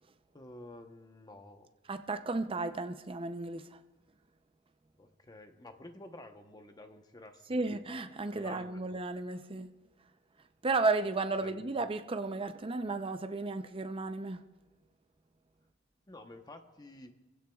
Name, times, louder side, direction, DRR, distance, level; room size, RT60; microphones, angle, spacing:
voice 1, 0.3-1.7 5.0-7.7 8.3-8.8 11.4-11.7 16.1-17.1, left 1 dB, 20° left, 0.9 m, -51 dB
voice 2, 1.9-3.8 7.5-9.7 10.6-14.4, right 3 dB, 30° right, 0.6 m, -34 dB
25.0 x 15.5 x 2.4 m
head